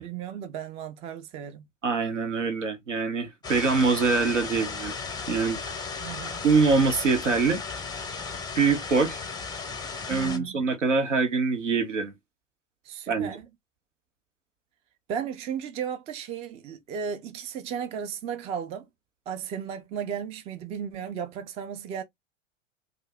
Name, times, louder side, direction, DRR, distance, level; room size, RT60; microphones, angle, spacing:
voice 1, 0.0-1.7 6.0-6.4 10.1-10.6 12.8-13.5 15.1-18.9 19.3-22.0, right 8 dB, 15° right, 0.4 m, -35 dB
voice 2, 1.8-4.9 5.3-5.6 6.4-7.6 8.5-9.2 10.1-12.1 13.1-13.3, right 4 dB, 75° right, 1.0 m, -24 dB
sound 1, 3.4-10.4, left 5 dB, 10° left, 0.7 m, -35 dB
2.6 x 2.4 x 3.3 m
figure-of-eight pair, 90°, 37 cm